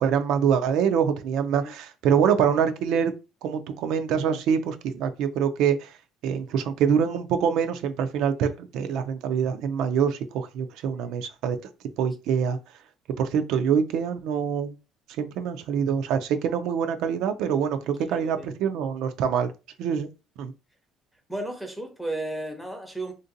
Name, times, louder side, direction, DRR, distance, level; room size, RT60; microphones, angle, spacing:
voice 1, 0.0-3.1 3.4-5.9 6.2-11.6 12.0-12.6 13.2-14.7 15.2-19.5 19.8-20.1 20.4-20.5, right 7 dB, 65° right, 0.4 m, -25 dB
voice 2, 18.0-18.5 21.3-23.1, right 2 dB, ahead, 0.6 m, -34 dB
3.5 x 2.6 x 2.6 m
cardioid pair, 150°, 0 cm